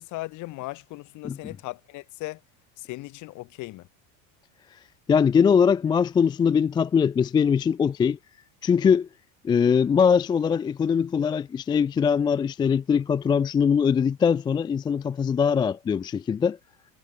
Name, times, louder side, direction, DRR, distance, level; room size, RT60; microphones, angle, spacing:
voice 1, 0.0-2.4 2.8-3.9, left 20 dB, 45° left, 4.4 m, -37 dB
voice 2, 5.1-8.2 8.6-9.1 9.4-16.6, left 6 dB, 10° left, 0.4 m, -22 dB
cardioid pair, 170°, 41 cm